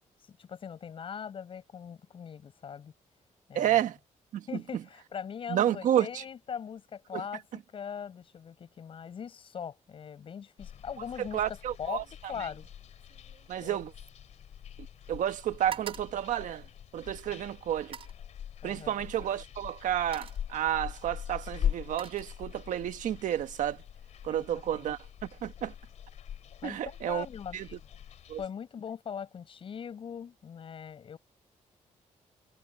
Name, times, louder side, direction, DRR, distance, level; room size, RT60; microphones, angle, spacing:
voice 1, 0.3-2.9 3.5-3.8 4.5-7.4 7.7-12.6 13.6-13.8 17.3-17.4 18.6-19.0 24.3-24.9 26.6-27.7 28.4-31.2, left 7 dB, 40° left, 6.7 m, -41 dB
voice 2, 3.5-4.0 4.3-4.5 5.5-6.1 7.1-7.2 11.2-12.0 13.5-13.9 15.1-16.7 16.9-18.0 18.6-23.8 24.2-25.7 26.6-27.3 27.5-27.7 28.3-28.4, right 11 dB, 75° right, 1.5 m, -30 dB
sound 1, 10.6-28.5, left 9 dB, 60° left, 3.3 m, -42 dB
sound 2, 11.2-11.6 11.9-15.0 15.3-17.2 17.8-18.3 19.3-19.5 19.9-20.6 21.4-22.8 23.2-23.6, right 7 dB, 45° right, 5.1 m, -48 dB
wide cardioid pair, 180°, 13 cm